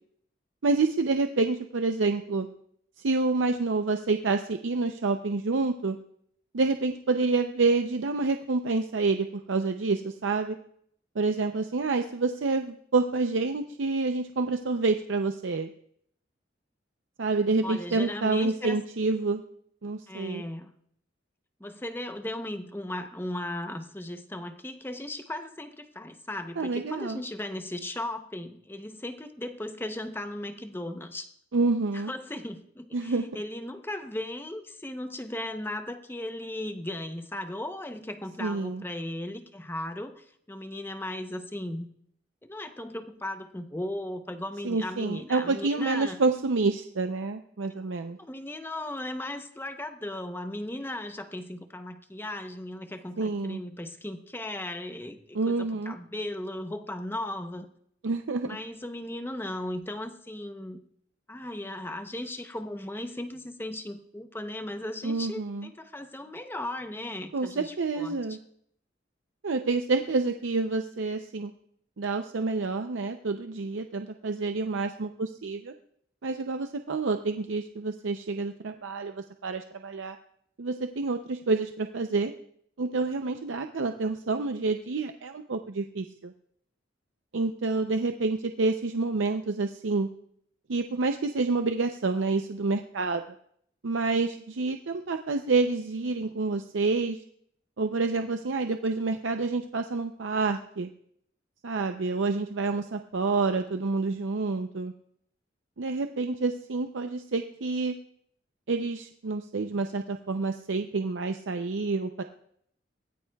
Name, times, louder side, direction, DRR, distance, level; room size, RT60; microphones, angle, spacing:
voice 1, 0.6-2.5 3.0-6.0 6.5-10.6 11.2-15.7 17.2-19.4 19.8-20.4 26.6-27.2 31.5-32.1 32.9-33.3 38.4-38.8 44.6-48.2 53.2-53.6 55.3-56.0 58.0-58.6 65.0-65.7 67.3-68.4 69.4-71.5 72.0-75.7 76.2-80.2 80.6-82.3 82.8-86.3 87.3-90.1 90.7-93.2 93.8-97.2 97.8-100.9 101.6-104.9 105.8-107.9 108.7-112.2, right 3 dB, 90° right, 6 dB, 0.6 m, -28 dB
voice 2, 17.6-18.8 20.1-20.7 21.6-31.3 31.9-41.9 42.4-46.2 48.2-57.7 58.4-60.8 61.3-68.4, left 1 dB, 10° left, 7 dB, 0.7 m, -37 dB
23.0 x 18.0 x 2.3 m, 0.69 s
head